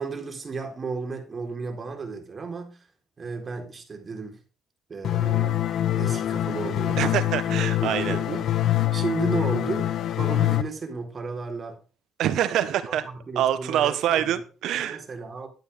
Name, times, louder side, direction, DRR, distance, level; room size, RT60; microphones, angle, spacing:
voice 1, 0.0-2.9 3.2-4.4 4.9-7.5 7.8-8.5 8.9-11.8 12.9-14.4 14.8-15.5, right 4 dB, 40° right, 4.0 m, -34 dB
sound 1, 5.0-10.6, left 12 dB, 75° left, 1.0 m, -24 dB
voice 2, 7.0-8.2 12.2-13.1 13.3-15.0, right 11 dB, 80° right, 1.5 m, -25 dB
12.5 x 9.7 x 3.7 m
cardioid pair, 90°, 0 cm